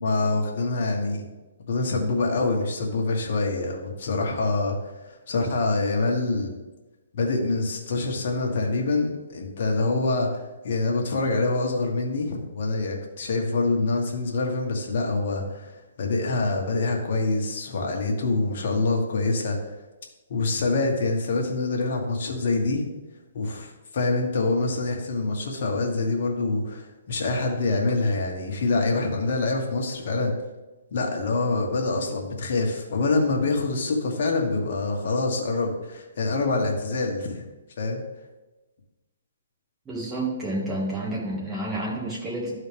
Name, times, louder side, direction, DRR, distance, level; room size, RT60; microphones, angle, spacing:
voice 1, 0.0-1.2 1.7-4.8 5.3-6.5 7.1-15.7 16.0-19.6 20.3-22.8 23.3-30.3 30.9-37.5 37.8-38.0, left 3 dB, 55° left, 1 dB, 1.5 m, -25 dB
voice 2, 39.9-42.5, right 1 dB, 15° right, -4 dB, 2.0 m, -29 dB
12.0 x 4.0 x 3.5 m, 1.1 s
hypercardioid pair, 150°, 0 cm